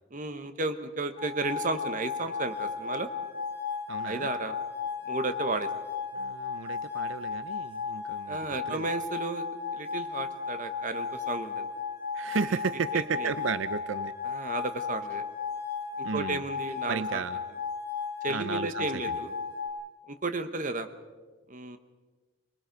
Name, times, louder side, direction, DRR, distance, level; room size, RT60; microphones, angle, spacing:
voice 1, 0.1-3.1 4.0-4.6 5.0-5.7 8.3-9.4 9.7-11.7 12.5-12.6 12.9-13.3 14.2-15.2 16.0-17.2 18.2-19.3 20.1-20.9 21.5-21.8, right 3 dB, 40° right, 9 dB, 1.1 m, -33 dB
sound 1, 1.2-19.7, left 6 dB, 35° left, 5.5 m, -35 dB
voice 2, 3.9-4.3 6.1-8.4 8.7-8.9 12.1-14.1 16.0-16.4 16.9-17.4 18.3-19.2, right 5 dB, 80° right, 14 dB, 0.5 m, -33 dB
24.5 x 20.5 x 5.2 m, 1.3 s
head